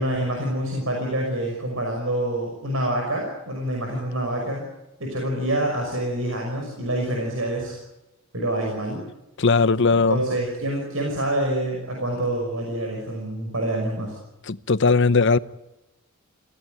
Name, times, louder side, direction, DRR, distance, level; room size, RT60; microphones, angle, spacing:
voice 1, 0.0-4.7 5.0-7.8 8.3-9.0 10.1-14.2, right 1 dB, 80° right, 5.9 m, -26 dB
voice 2, 9.4-10.2 14.5-15.4, left 4 dB, 60° left, 0.8 m, -18 dB
26.0 x 17.0 x 9.2 m
head